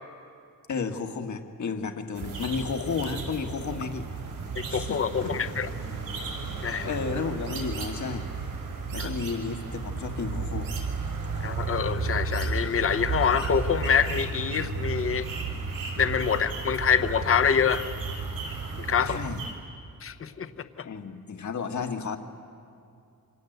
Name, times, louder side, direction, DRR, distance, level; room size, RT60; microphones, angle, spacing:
voice 1, 0.7-4.1 4.7-5.4 6.8-8.5 8.9-10.7 19.1-19.4 20.8-22.2, left 5 dB, 60° left, 6 dB, 1.9 m, -32 dB
sound 1, 2.1-19.5, right 4 dB, 80° right, 6.1 m, -33 dB
voice 2, 4.5-5.7 6.6-6.9 9.0-9.1 11.4-15.3 16.0-17.9 18.8-19.2 20.0-20.9, left 7 dB, 40° left, 10 dB, 1.0 m, -26 dB
28.0 x 25.5 x 8.1 m, 2.5 s
wide cardioid pair, 135°, 33 cm